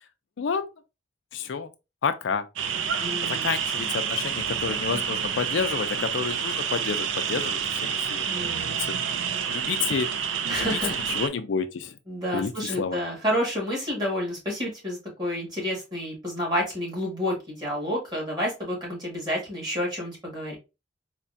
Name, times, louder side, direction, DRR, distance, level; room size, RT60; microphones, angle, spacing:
voice 1, 0.4-0.7 1.3-1.7 2.0-2.5 3.2-8.3 8.8-9.0 9.5-10.1 10.5-12.0 12.3-13.0, left 6 dB, 90° left, 0.4 m, -29 dB
sound 1, 2.6-11.3, right 7 dB, 90° right, 0.4 m, -28 dB
voice 2, 3.0-3.6 8.2-9.0 10.5-11.0 12.1-20.6, equal, 25° right, 1.8 m, -30 dB
4.1 x 2.3 x 2.6 m
head